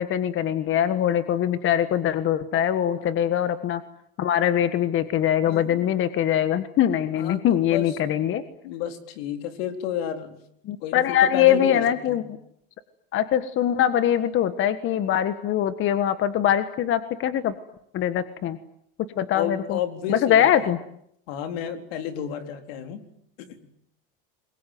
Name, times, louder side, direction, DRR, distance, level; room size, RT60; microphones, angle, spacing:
voice 1, 0.0-3.8 4.2-8.4 10.6-12.2 13.1-17.5 17.9-18.6 19.2-19.8 20.1-20.8, left 10 dB, 45° left, 11 dB, 1.6 m, -22 dB
voice 2, 5.5-5.9 7.1-8.0 8.6-10.4 10.8-12.2 19.3-20.7 21.3-23.0 23.4-23.6, left 9 dB, 80° left, 7 dB, 4.1 m, -32 dB
28.0 x 22.5 x 9.5 m, 0.73 s
supercardioid pair, 125°, 30 cm